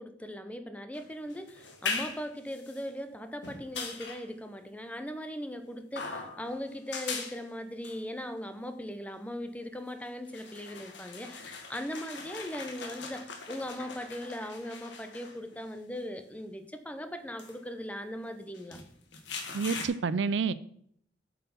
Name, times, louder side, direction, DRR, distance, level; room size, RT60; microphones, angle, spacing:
voice 1, 0.0-18.8, equal, 10° left, 0.8 m, -39 dB
sound 1, 0.9-2.8 3.4-4.3 5.9-6.6 6.9-7.4 7.8-8.0 9.7-9.8 10.2-15.6 16.3-16.4 17.4-17.5 18.5-19.9, left 4 dB, 70° left, 1.6 m, -40 dB
voice 2, 19.5-20.5, right 5 dB, 70° right, 0.4 m, -28 dB
8.2 x 5.6 x 5.6 m
head